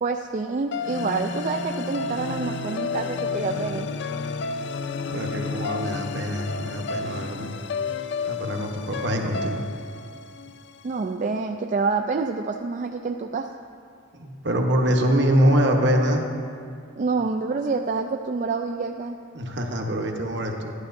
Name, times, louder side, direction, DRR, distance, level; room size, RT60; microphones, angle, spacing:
voice 1, 0.0-3.9 10.8-13.5 17.0-19.2, right 4 dB, 40° right, 4 dB, 0.3 m, -27 dB
sound 1, 0.7-11.0, left 5 dB, 60° left, 0.4 m, -31 dB
voice 2, 5.1-7.5 8.2-9.6 14.2-16.2 19.3-20.7, equal, 60° right, 2 dB, 1.0 m, -24 dB
13.0 x 11.5 x 2.6 m, 2.3 s
head